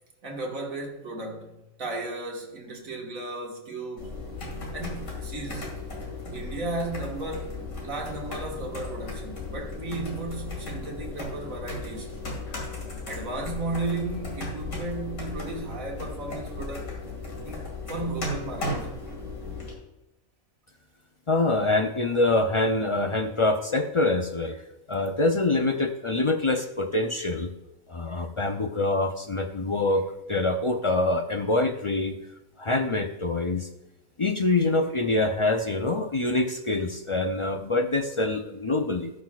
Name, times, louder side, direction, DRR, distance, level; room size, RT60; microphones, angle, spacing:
voice 1, 0.2-4.2 4.7-5.7 6.3-7.6 7.8-12.1 13.1-16.9 17.4-18.9, right 2 dB, 80° right, 2.1 m, -35 dB
sound 1, 4.0-19.7, left 2 dB, 85° left, 2.7 m, -36 dB
voice 2, 21.3-27.5 27.9-32.1 32.6-33.7 34.2-39.1, left 2 dB, 50° left, 0.3 m, -25 dB
18.0 x 6.2 x 2.4 m
omnidirectional pair, 1.4 m